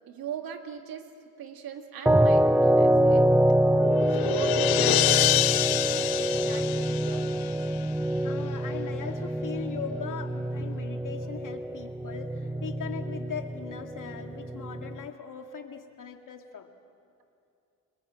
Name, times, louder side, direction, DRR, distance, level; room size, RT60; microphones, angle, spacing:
voice 1, 0.1-3.3 4.1-7.5, right 8 dB, 80° right, 5 dB, 2.2 m, -40 dB
sound 1, 2.1-15.0, right 1 dB, 5° right, 0.5 m, -26 dB
sound 2, 3.4-8.0, left 15 dB, 85° left, 0.6 m, -27 dB
voice 2, 8.2-16.7, left 7 dB, 60° left, 5 dB, 2.3 m, -39 dB
29.5 x 20.5 x 7.7 m, 2.5 s
cardioid pair, 65°, 35 cm